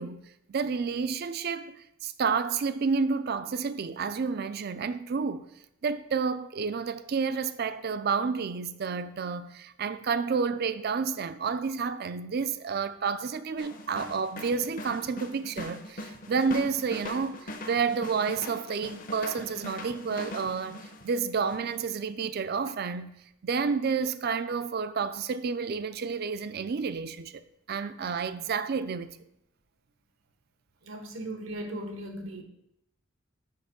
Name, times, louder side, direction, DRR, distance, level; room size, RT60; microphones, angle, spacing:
voice 1, 0.0-1.8 2.0-5.4 5.8-27.3 27.7-29.2, right 5 dB, 50° right, 0.4 m, -30 dB
sound 1, 13.6-21.2 21.5-21.8, left 1 dB, 45° left, 0.7 m, -41 dB
voice 2, 30.8-32.4, right 1 dB, 80° right, 1.1 m, -37 dB
6.3 x 5.3 x 5.2 m
head